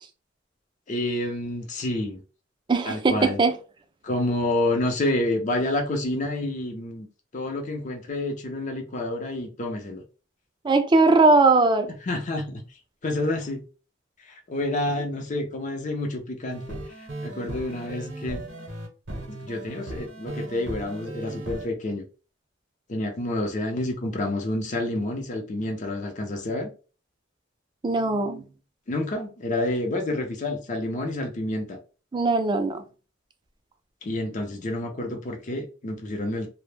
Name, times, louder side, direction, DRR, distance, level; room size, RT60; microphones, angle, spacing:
voice 1, 0.9-2.2 2.9-3.4 4.0-7.1 7.3-10.0 12.1-12.6 13.0-13.6 14.3-18.4 19.3-22.0 22.9-26.7 28.9-31.8 34.0-36.5, left 1 dB, 40° left, 0.5 m, -29 dB
voice 2, 2.7-3.5 10.6-11.9 27.8-28.5 32.1-32.8, right 3 dB, 25° right, 0.3 m, -20 dB
sound 1, 16.5-21.7, right 2 dB, 65° right, 0.7 m, -37 dB
2.1 x 2.0 x 3.1 m
head